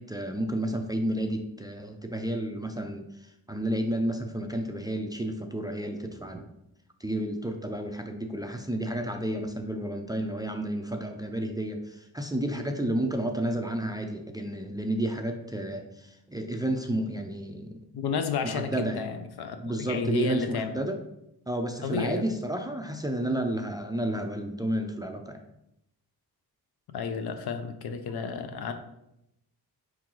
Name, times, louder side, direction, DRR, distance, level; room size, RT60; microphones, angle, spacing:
voice 1, 0.0-6.5 7.0-17.8 18.4-19.1 19.6-21.0 21.5-25.4 28.0-28.2, right 1 dB, 10° right, 4 dB, 0.3 m, -31 dB
voice 2, 17.9-19.6 19.9-20.7 21.8-22.2 26.9-28.7, left 6 dB, 75° left, 8 dB, 0.6 m, -31 dB
4.5 x 3.7 x 3.0 m, 0.84 s
wide cardioid pair, 110°, 38 cm